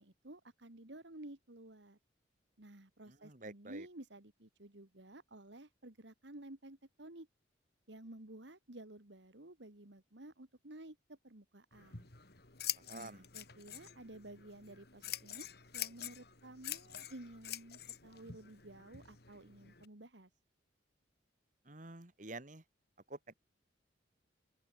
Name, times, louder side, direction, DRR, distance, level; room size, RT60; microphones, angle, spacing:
voice 1, 0.0-2.0 2.6-7.3 7.9-12.1 12.9-15.5 15.7-20.3, right 1 dB, 70° right, 2.3 m, -53 dB
voice 2, 3.1-3.9 12.8-13.3 21.7-22.6 23.1-23.3, right 2 dB, 45° right, 1.9 m, -49 dB
Scissors, 11.7-19.8, left 12 dB, 55° left, 2.9 m, -46 dB
open air
head